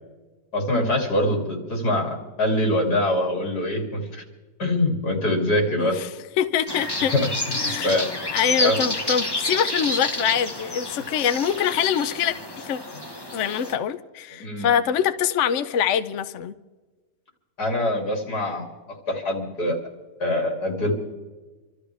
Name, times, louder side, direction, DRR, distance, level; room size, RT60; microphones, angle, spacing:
voice 1, 0.5-4.2 4.6-6.0 7.1-8.1 8.6-8.8 14.4-14.7 17.6-18.6 19.1-19.8 20.2-20.9, left 1 dB, 85° left, 0 dB, 3.4 m, -24 dB
voice 2, 5.8-6.1 6.4-7.1 7.5-7.9 8.3-12.8 13.3-16.5, left 8 dB, 60° left, 11 dB, 0.8 m, -24 dB
sound 1, 6.7-13.8, left 1 dB, 15° left, 1.1 m, -29 dB
27.0 x 13.0 x 3.4 m, 1.3 s
omnidirectional pair, 1.7 m